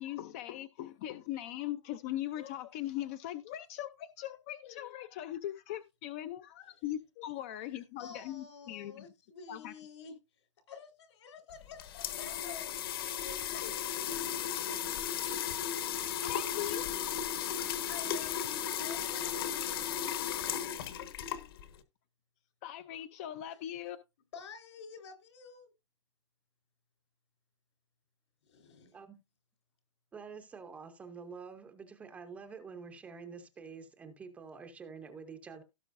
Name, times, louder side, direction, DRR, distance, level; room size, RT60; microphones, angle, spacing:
voice 1, 0.0-9.1 9.5-9.7 13.5-14.1 16.2-16.8 20.9-21.0 22.6-24.0, left 13 dB, 30° left, 0.5 m, -40 dB
voice 2, 8.0-10.2 10.7-12.8 17.6-19.5 24.3-25.7 28.5-28.9, left 5 dB, 70° left, 4.0 m, -49 dB
sound 1, 11.5-21.8, left 9 dB, 50° left, 1.3 m, -35 dB
voice 3, 30.1-35.6, right 5 dB, 10° right, 0.7 m, -47 dB
17.0 x 5.8 x 2.5 m
hypercardioid pair, 170°, 15 cm